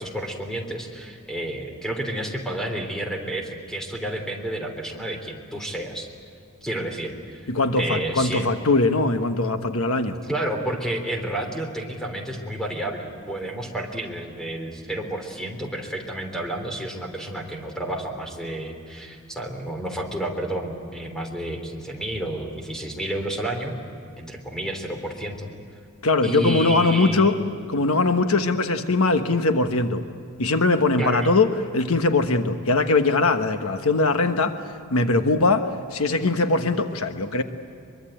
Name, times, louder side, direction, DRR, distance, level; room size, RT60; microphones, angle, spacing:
voice 1, 0.0-6.1 6.6-7.5 7.8-8.5 10.3-23.7 24.2-25.5 26.2-27.4 31.0-31.3, right 1 dB, 5° left, 2 dB, 3.4 m, -30 dB
voice 2, 7.5-10.2 26.0-27.3 27.7-30.0 30.4-31.5 31.7-34.6 34.9-37.4, left 3 dB, 80° left, 7 dB, 1.3 m, -21 dB
24.0 x 23.0 x 9.0 m, 2.4 s
head